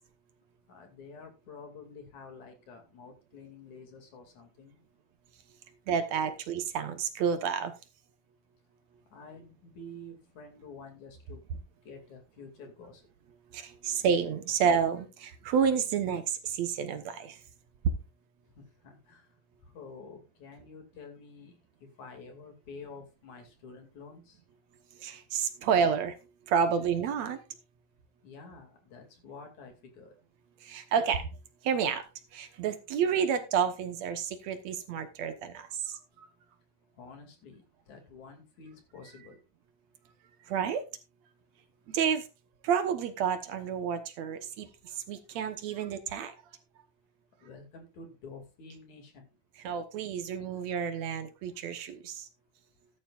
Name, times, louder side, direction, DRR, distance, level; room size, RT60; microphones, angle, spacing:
voice 1, 0.7-4.8 9.1-11.4 11.9-13.0 18.6-19.3 19.6-21.6 22.0-24.4 28.2-30.2 37.0-39.4 47.4-49.3, left 3 dB, 55° left, 3.7 m, -49 dB
voice 2, 5.9-7.7 13.5-17.4 25.0-26.2 26.5-27.4 30.6-31.3 31.6-32.1 32.3-36.3 40.5-40.8 41.9-42.3 42.6-46.3 49.6-52.3, right 7 dB, 60° right, 2.0 m, -30 dB
14.0 x 11.5 x 2.5 m
omnidirectional pair, 4.0 m